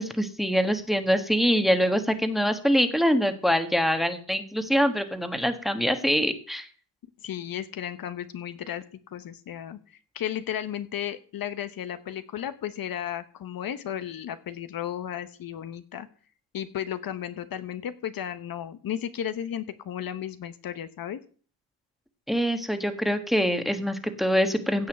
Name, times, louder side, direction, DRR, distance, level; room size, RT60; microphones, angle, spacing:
voice 1, 0.0-6.7 22.3-24.9, equal, ahead, 8 dB, 1.4 m, -24 dB
voice 2, 7.2-16.1 16.5-21.2, left 10 dB, 55° left, 12 dB, 1.0 m, -34 dB
16.0 x 5.6 x 7.9 m, 0.41 s
cardioid pair, 135°, 42 cm